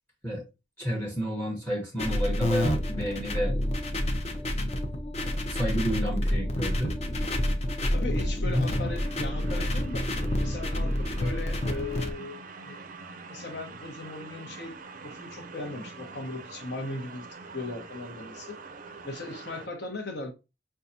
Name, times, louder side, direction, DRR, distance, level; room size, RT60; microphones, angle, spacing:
voice 1, 0.8-3.5 5.5-6.9 8.4-8.7, equal, 10° left, 0.9 m, -30 dB
sound 1, 2.0-12.1, left 1 dB, 35° left, 0.6 m, -28 dB
voice 2, 7.9-10.1 10.4-12.8 13.3-14.8 15.0-17.3 17.5-18.6 19.0-20.3, left 2 dB, 65° left, 1.0 m, -38 dB
sound 2, 8.8-19.7, right 4 dB, 45° right, 0.5 m, -45 dB
5.5 x 2.4 x 2.7 m
head